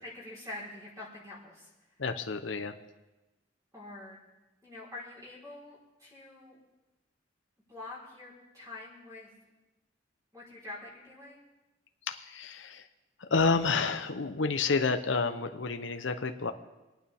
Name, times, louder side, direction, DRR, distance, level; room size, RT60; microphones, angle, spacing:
voice 1, 0.0-1.7 3.7-4.2 4.6-6.6 7.7-9.3 10.3-11.4, left 2 dB, 20° right, -6 dB, 4.3 m, -45 dB
voice 2, 2.0-2.8 12.1-12.9 13.2-16.5, left 4 dB, 75° left, 8 dB, 0.9 m, -29 dB
25.5 x 9.2 x 3.5 m, 1.1 s
head